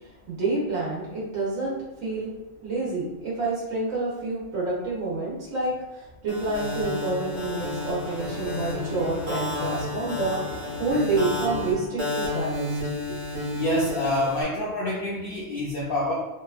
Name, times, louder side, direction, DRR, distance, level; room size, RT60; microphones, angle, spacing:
voice 1, 0.0-2.3 2.6-12.8, right 2 dB, 80° right, -6 dB, 1.1 m, -28 dB
sound 1, 6.3-14.4, left 2 dB, 35° right, 1.0 m, -32 dB
sound 2, 6.4-11.8, left 3 dB, 80° left, 1.0 m, -41 dB
voice 2, 13.5-16.1, left 1 dB, 65° left, -5 dB, 0.6 m, -26 dB
2.8 x 2.2 x 2.3 m, 1.1 s
omnidirectional pair, 1.4 m